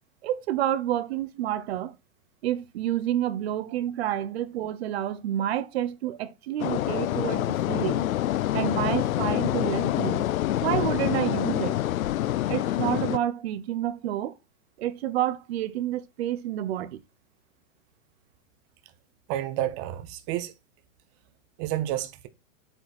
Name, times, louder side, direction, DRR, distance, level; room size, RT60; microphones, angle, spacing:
voice 1, 0.2-1.9 2.4-8.1 8.5-10.3 10.6-11.8 12.5-14.3 14.8-17.0, right 12 dB, 50° right, 0.8 m, -29 dB
sound 1, 6.6-13.2, left 13 dB, 90° left, 0.7 m, -26 dB
voice 2, 19.3-20.5 21.6-22.3, right 13 dB, 20° right, 0.5 m, -30 dB
7.7 x 5.1 x 4.2 m
supercardioid pair, 160°, 40 cm